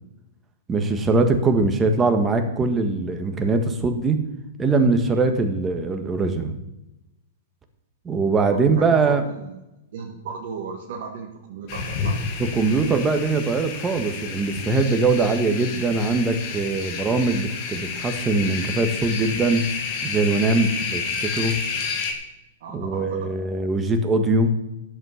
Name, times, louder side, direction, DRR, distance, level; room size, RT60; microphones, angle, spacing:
voice 1, 0.7-4.2 4.6-6.5 8.0-9.2 12.4-19.6 20.0-21.6 22.7-24.5, right 3 dB, 20° right, 7 dB, 1.5 m, -22 dB
voice 2, 8.3-9.6 9.9-12.2 22.6-23.3, right 5 dB, 60° right, -1 dB, 1.6 m, -36 dB
sound 1, 11.7-22.1, left 5 dB, 45° left, 2.1 m, -30 dB
11.0 x 7.8 x 5.8 m, 0.92 s
hypercardioid pair, 115°, 0 cm